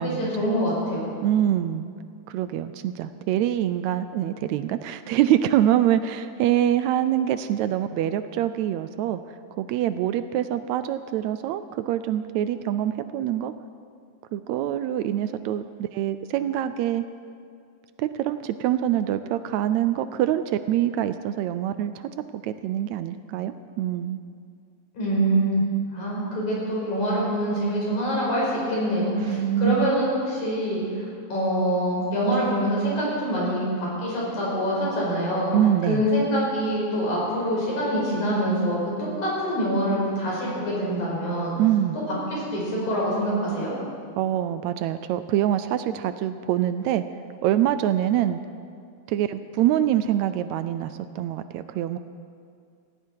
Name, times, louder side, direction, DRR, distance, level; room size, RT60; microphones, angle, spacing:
voice 1, 0.0-1.1 24.9-25.6 25.9-35.5 35.9-41.5 42.3-43.7, equal, 80° left, -5 dB, 6.7 m, -25 dB
voice 2, 1.2-1.9 2.3-9.2 9.6-13.5 14.3-17.0 18.0-21.9 22.3-24.2 29.2-29.9 35.5-36.0 41.6-42.0 44.2-47.0 47.4-48.4 49.1-52.0, right 11 dB, 80° right, 12 dB, 1.8 m, -25 dB
18.0 x 16.0 x 4.7 m, 2.3 s
omnidirectional pair, 3.4 m